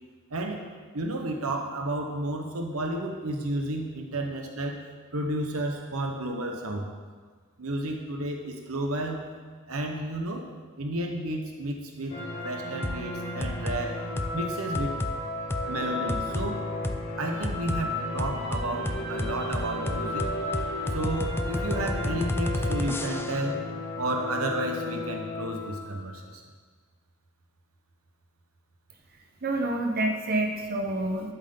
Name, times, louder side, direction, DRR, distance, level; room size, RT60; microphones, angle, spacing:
voice 1, 0.3-0.6 0.9-4.8 5.1-6.9 7.6-9.2 9.7-10.5 10.8-14.0 14.3-15.1 15.7-16.6 17.2-20.3 20.9-23.7 24.0-26.4, right 1 dB, 80° right, 3 dB, 1.1 m, -32 dB
sound 1, 12.1-26.0, left 2 dB, 75° left, 2.4 m, -34 dB
sound 2, 12.8-13.0 13.4-13.8 14.2-14.4 14.7-15.1 15.5-15.6 16.1-16.5 16.8-17.0 17.4-17.8 18.2-23.5, left 1 dB, 10° left, 0.3 m, -31 dB
voice 2, 29.4-31.3, right 1 dB, 45° right, 1 dB, 1.0 m, -28 dB
12.0 x 7.2 x 3.9 m, 1.5 s
head